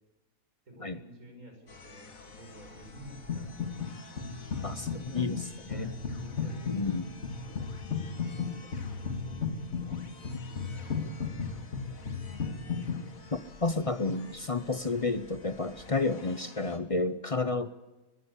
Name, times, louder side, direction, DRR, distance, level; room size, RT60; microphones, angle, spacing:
voice 1, 0.7-3.6 4.7-5.3 5.7-7.1 8.0-9.4 10.4-12.3, right 1 dB, 75° right, 3 dB, 6.4 m, -52 dB
sound 1, 1.7-16.8, left 4 dB, 70° left, 2.3 m, -51 dB
sound 2, 3.3-3.9 4.2-13.0, left 5 dB, 50° left, 2.3 m, -35 dB
voice 2, 6.7-7.1 13.3-17.7, left 3 dB, 35° left, 13 dB, 0.6 m, -31 dB
20.5 x 16.5 x 8.2 m, 1.1 s
omnidirectional pair, 1.5 m